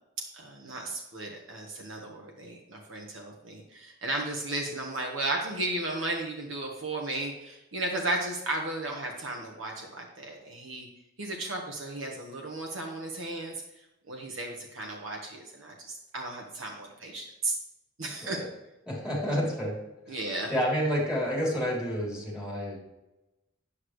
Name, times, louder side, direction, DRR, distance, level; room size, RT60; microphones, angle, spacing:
voice 1, 0.3-10.9 11.2-13.5 14.1-17.5 18.0-18.4 20.1-20.5, right 2 dB, 80° right, 0 dB, 1.4 m, -34 dB
voice 2, 18.9-19.8 20.1-20.2 20.5-22.8, equal, 5° right, -5 dB, 3.6 m, -29 dB
9.9 x 8.5 x 3.2 m, 0.97 s
head